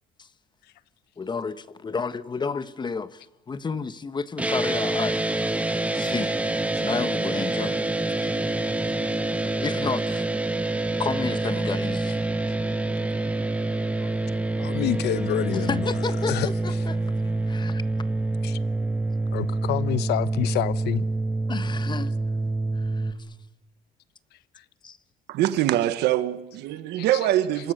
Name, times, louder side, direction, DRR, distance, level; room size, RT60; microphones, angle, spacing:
voice 1, 1.2-6.4 6.8-8.7 9.6-10.3 11.0-12.3 14.0-14.1 15.5-17.0 17.5-17.8 21.5-22.1 22.7-23.4 24.8-25.0, left 5 dB, 25° left, 1.3 m, -32 dB
sound 1, 4.4-23.1, right 2 dB, 10° right, 2.0 m, -26 dB
voice 2, 14.6-15.8 16.3-16.5 18.4-18.6 19.3-21.0 27.0-27.1, left 13 dB, 80° left, 1.0 m, -27 dB
voice 3, 25.3-27.7, right 13 dB, 85° right, 1.4 m, -23 dB
28.0 x 24.0 x 6.7 m
cardioid pair, 110°, 17 cm